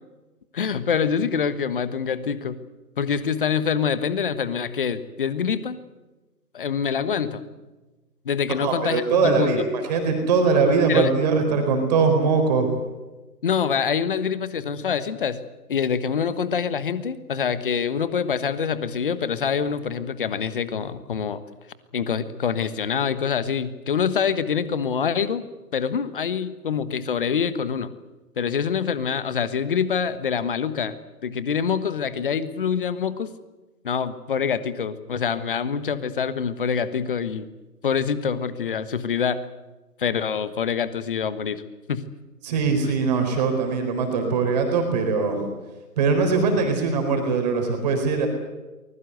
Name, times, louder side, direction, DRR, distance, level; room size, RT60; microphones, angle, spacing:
voice 1, 0.5-2.6 3.0-5.8 6.5-7.4 8.2-9.6 10.9-11.1 13.4-15.4 15.7-21.4 21.9-25.4 25.7-27.9 28.4-31.0 31.2-33.3 33.8-37.5 37.8-39.4 40.0-41.6 41.9-42.0, left 7 dB, 35° left, 13 dB, 1.4 m, -25 dB
voice 2, 8.6-12.7 42.4-45.5 46.0-48.3, right 4 dB, 25° right, 4 dB, 4.3 m, -21 dB
24.0 x 21.0 x 8.0 m, 1.2 s
figure-of-eight pair, 150°, 48 cm